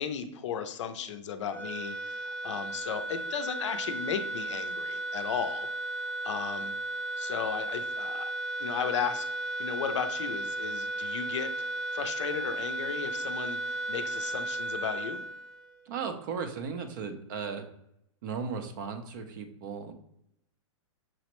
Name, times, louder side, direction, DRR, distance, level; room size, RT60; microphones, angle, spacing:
voice 1, 0.0-5.7 6.2-6.7 7.2-8.3 8.6-9.3 9.6-11.7 11.9-15.2, left 7 dB, 65° left, 9 dB, 0.5 m, -35 dB
sound 1, 1.5-16.0, right 1 dB, 5° left, 0.7 m, -35 dB
voice 2, 15.9-17.6 18.2-19.9, right 5 dB, 40° right, 7 dB, 0.5 m, -36 dB
6.0 x 2.1 x 2.9 m, 0.77 s
hypercardioid pair, 165°, 17 cm